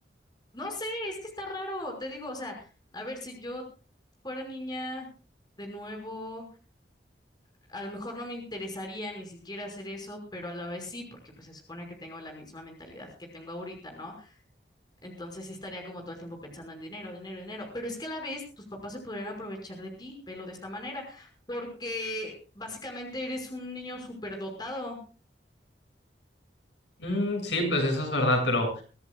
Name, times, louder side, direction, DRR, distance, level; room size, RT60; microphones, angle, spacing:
voice 1, 0.5-3.6 4.2-5.1 5.6-6.4 7.7-11.0 11.4-13.1 13.3-14.4 15.0-25.0, left 1 dB, 25° left, 2 dB, 5.7 m, -38 dB
voice 2, 27.0-28.8, left 1 dB, 80° left, 2 dB, 7.4 m, -26 dB
24.0 x 16.0 x 2.4 m, 0.36 s
head